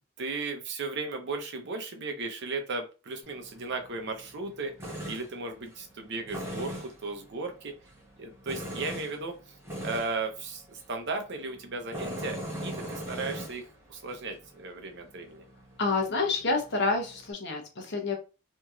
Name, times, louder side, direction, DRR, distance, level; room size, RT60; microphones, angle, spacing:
voice 1, 0.2-4.7 5.1-7.7 8.2-9.4 9.8-13.6 13.9-15.4, right 3 dB, 60° right, 5 dB, 0.7 m, -35 dB
Tools, 3.2-17.3, equal, 10° right, 0.8 m, -42 dB
voice 2, 15.8-18.2, left 3 dB, 55° left, 2 dB, 0.9 m, -28 dB
2.9 x 2.7 x 2.4 m, 0.32 s
head